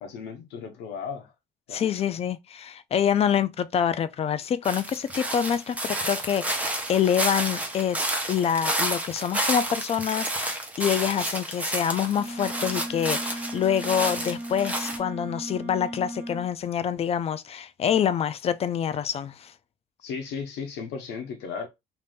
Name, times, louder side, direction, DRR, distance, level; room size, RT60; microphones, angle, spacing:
voice 1, 0.0-1.3 1.7-1.9 20.0-21.7, left 6 dB, 90° left, 1.0 m, -35 dB
voice 2, 1.7-8.0 8.3-19.5, left 8 dB, 35° left, 0.4 m, -26 dB
sound 1, 4.6-15.0, right 1 dB, 10° right, 0.8 m, -30 dB
Wind instrument woodwind instrument, 12.1-16.5, right 1 dB, 60° right, 1.1 m, -36 dB
2.7 x 2.5 x 3.4 m
cardioid pair, 110°, 17 cm